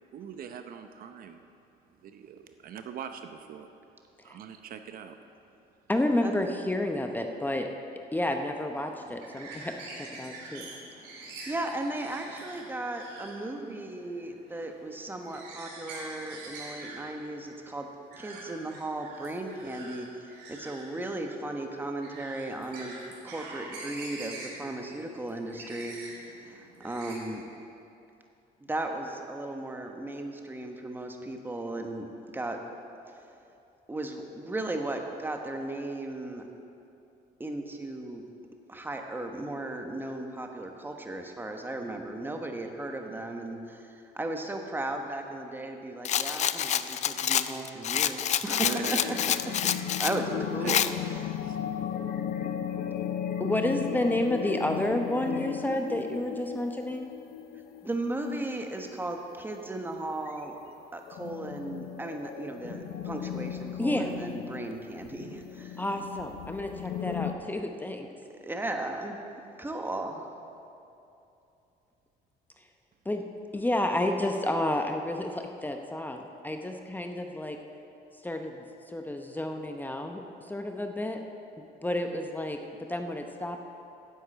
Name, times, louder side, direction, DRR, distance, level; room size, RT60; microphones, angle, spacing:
voice 1, 0.1-1.4 2.0-3.7 4.2-5.2 48.6-49.3 50.6-50.9 51.4-51.6, right 8 dB, 60° right, 8 dB, 0.7 m, -40 dB
voice 2, 5.9-7.7 8.1-10.7 53.4-57.1 63.8-64.1 65.8-68.1 73.1-73.2 73.5-77.6 78.2-81.2 81.8-82.6 82.9-83.7, left 1 dB, 10° left, 4 dB, 0.8 m, -30 dB
sound 1, 8.7-27.2, right 2 dB, 85° right, 2.9 m, -45 dB
voice 3, 11.0-17.9 18.2-27.4 28.6-32.6 33.1-33.3 33.9-36.5 37.4-38.2 38.7-50.9 57.8-60.6 60.9-65.8 68.4-69.2 69.6-70.3, right 2 dB, 10° right, 3 dB, 1.2 m, -36 dB
Rattle, 46.0-50.2 50.7-50.9, left 10 dB, 45° left, 0.4 m, -27 dB
sound 2, 48.6-59.2 59.8-59.9 60.2-60.4 60.8-67.3, left 9 dB, 70° left, 0.8 m, -36 dB
10.5 x 7.9 x 7.8 m, 2.7 s
cardioid pair, 110°, 17 cm